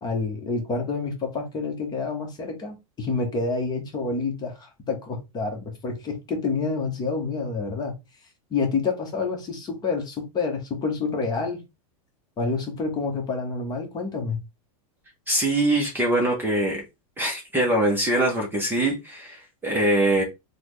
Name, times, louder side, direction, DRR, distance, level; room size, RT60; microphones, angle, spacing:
voice 1, 0.0-8.0 8.5-11.6 12.4-14.4, left 4 dB, 20° left, 0.9 m, -28 dB
voice 2, 15.3-16.8 17.2-20.2, right 1 dB, 10° right, 0.6 m, -23 dB
3.8 x 2.1 x 3.0 m
supercardioid pair, 145°, 19 cm